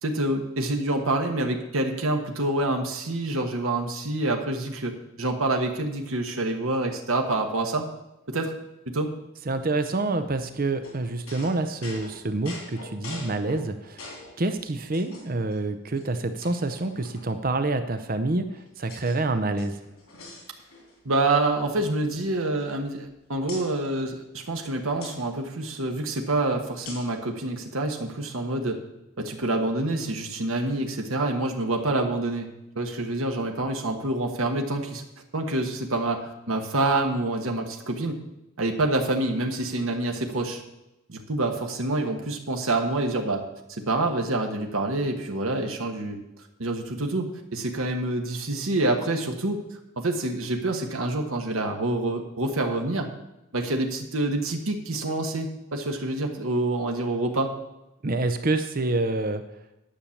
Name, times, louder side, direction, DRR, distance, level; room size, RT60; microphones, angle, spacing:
voice 1, 0.0-4.9 5.2-7.9 8.3-8.5 8.9-9.1 21.0-28.8 29.2-32.5 32.7-35.0 35.3-38.2 38.6-40.6 41.1-43.4 43.7-46.2 46.6-49.6 50.0-53.1 53.5-57.5, right 2 dB, 75° right, 3 dB, 1.2 m, -27 dB
voice 2, 9.5-14.1 14.4-19.8 58.0-59.4, right 2 dB, 40° right, 9 dB, 0.6 m, -27 dB
sound 1, 10.8-14.4 14.9-15.6 16.0-16.1 16.4-17.5 18.2-19.2 19.5-21.0 21.3-21.5 21.8-23.1 23.5-23.7 25.0-25.2 26.9-27.2, left 2 dB, 85° left, 3.1 m, -44 dB
10.0 x 6.7 x 7.1 m, 0.92 s
head